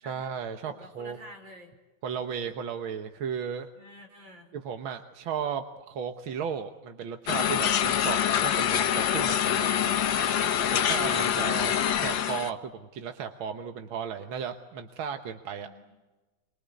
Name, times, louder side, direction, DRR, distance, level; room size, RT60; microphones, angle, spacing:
voice 1, 0.1-1.2 2.0-3.7 4.5-9.9 10.7-15.7, right 7 dB, 85° right, 6 dB, 2.0 m, -35 dB
voice 2, 0.6-1.7 3.7-4.5 9.6-10.7 15.6-15.9, right 1 dB, 65° right, 3 dB, 6.0 m, -49 dB
sound 1, 7.3-12.5, left 9 dB, 70° left, 1.7 m, -25 dB
27.5 x 22.5 x 8.4 m, 1.2 s
omnidirectional pair, 2.2 m